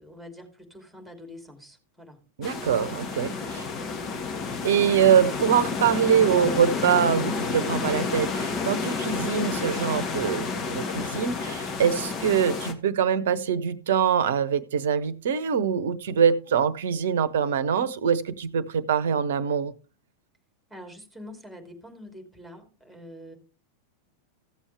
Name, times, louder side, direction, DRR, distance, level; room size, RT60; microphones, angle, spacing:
voice 1, 0.0-2.2 3.2-4.0 20.7-23.4, left 1 dB, ahead, 2.9 m, -45 dB
sound 1, 2.4-12.7, left 4 dB, 30° left, 1.6 m, -30 dB
voice 2, 2.4-3.3 4.6-19.7, right 8 dB, 60° right, 0.9 m, -24 dB
15.0 x 7.2 x 3.4 m
figure-of-eight pair, 90°, 0 cm